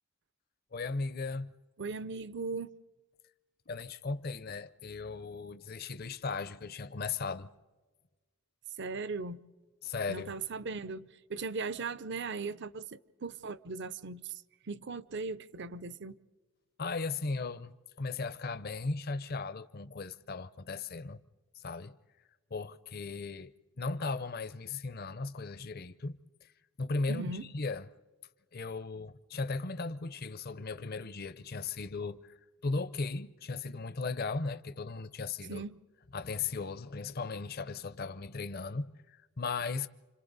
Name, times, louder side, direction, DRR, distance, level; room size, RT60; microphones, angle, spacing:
voice 1, 0.7-1.5 3.7-7.5 9.8-10.4 16.8-17.7 18.0-21.2 21.6-22.0 22.5-23.5 23.8-26.5 26.8-27.9 28.5-32.4 32.6-35.6 36.1-39.9, left 4 dB, 45° left, 0.6 m, -37 dB
voice 2, 1.8-2.7 8.8-9.4 10.1-16.2 27.1-27.5 35.5-35.8, right 4 dB, 50° right, 0.6 m, -38 dB
29.5 x 26.5 x 4.0 m
head